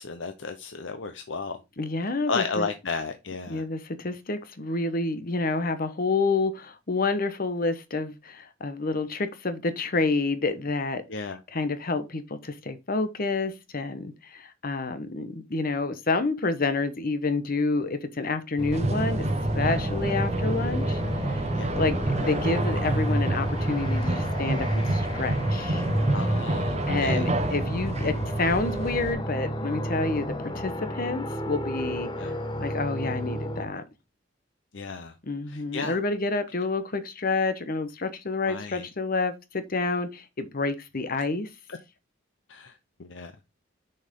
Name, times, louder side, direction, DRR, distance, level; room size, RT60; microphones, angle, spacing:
voice 1, 0.0-1.6 2.3-3.6 11.1-11.4 21.5-21.8 26.1-27.3 32.2-32.3 34.7-35.1 35.5-36.0 38.4-38.9 41.7-41.8 42.5-43.3, left 4 dB, 65° left, 0.8 m, -33 dB
voice 2, 1.8-2.7 3.5-11.2 11.5-19.3 19.5-21.0 21.3-21.4 21.7-25.9 26.9-33.8 35.3-41.5, left 3 dB, 50° left, 1.0 m, -29 dB
sound 1, 18.6-33.7, equal, 25° left, 1.1 m, -32 dB
sound 2, 18.7-29.1, right 1 dB, 35° right, 0.9 m, -28 dB
6.6 x 5.7 x 3.7 m
head